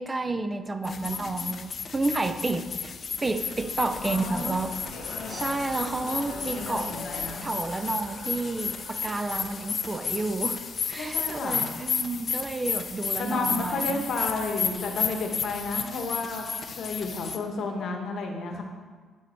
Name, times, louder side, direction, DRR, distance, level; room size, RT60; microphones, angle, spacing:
voice 1, 0.0-2.9 3.2-4.8 5.1-7.0 7.4-10.6 10.9-14.0, right 2 dB, 25° right, 10 dB, 0.4 m, -30 dB
voice 2, 0.8-1.6 4.0-4.6 6.5-7.5 11.0-11.7 13.2-16.4 16.8-18.6, left 3 dB, 65° left, 3 dB, 1.1 m, -32 dB
sound 1, 0.8-17.4, left 6 dB, 50° left, 0.5 m, -33 dB
sound 2, 3.4-8.5, left 4 dB, 85° left, 0.9 m, -42 dB
Race car auto racing, 3.4-14.7, right 1 dB, 85° right, 2.5 m, -49 dB
10.5 x 4.1 x 4.4 m, 1.5 s
cardioid pair, 90°, 0 cm